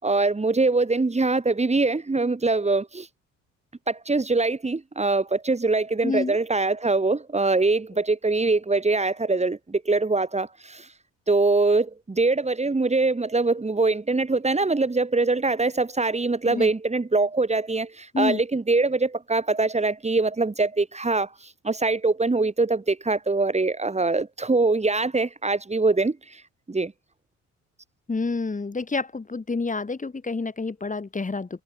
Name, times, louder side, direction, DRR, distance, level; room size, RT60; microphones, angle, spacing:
voice 1, 0.0-3.1 3.9-10.9 11.3-21.3 21.6-26.4 26.7-26.9, right 3 dB, 20° right, 7.4 m, -23 dB
voice 2, 6.0-6.4 16.4-16.7 18.1-18.4 28.1-31.5, left 3 dB, 25° left, 7.6 m, -28 dB
cardioid pair, 90°, 30 cm